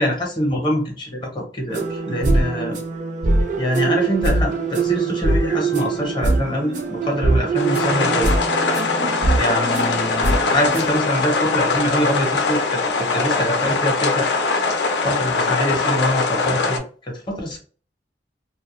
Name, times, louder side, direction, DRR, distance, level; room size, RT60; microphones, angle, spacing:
voice 1, 0.0-2.8 3.6-8.3 9.3-14.3 15.0-17.6, equal, 25° left, 1 dB, 0.7 m, -24 dB
sound 1, 1.7-11.0, right 2 dB, 45° right, 0.4 m, -22 dB
sound 2, 7.6-16.8, left 3 dB, 70° left, 0.5 m, -22 dB
2.3 x 2.1 x 2.9 m, 0.41 s
head